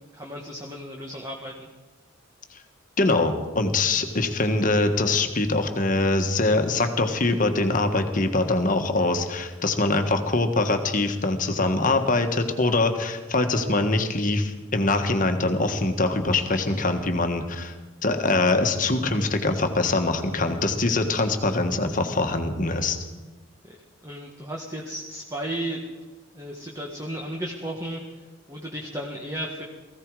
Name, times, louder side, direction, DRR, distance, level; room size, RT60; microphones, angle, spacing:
voice 1, 0.1-1.7 3.9-4.0 20.3-20.5 23.6-23.8 24.0-25.8 26.3-28.0 28.5-29.6, right 1 dB, 15° right, -1 dB, 1.6 m, -34 dB
voice 2, 3.0-17.7 18.0-23.0, left 2 dB, 40° left, 6 dB, 1.5 m, -23 dB
19.0 x 15.5 x 4.8 m, 1.3 s
head